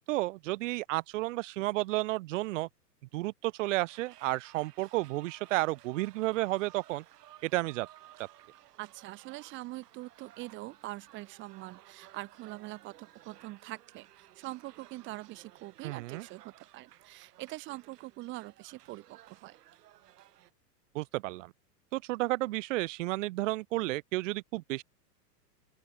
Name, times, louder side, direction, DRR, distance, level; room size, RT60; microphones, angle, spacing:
voice 1, 0.1-2.7 3.1-7.0 7.4-7.9 15.8-16.3 20.9-21.5 21.9-24.8, right 19 dB, 50° right, 0.5 m, -32 dB
sound 1, 3.5-20.5, right 13 dB, 75° right, 3.4 m, -57 dB
voice 2, 8.8-19.6, right 19 dB, 25° right, 0.9 m, -44 dB
open air
supercardioid pair, 150°, 49 cm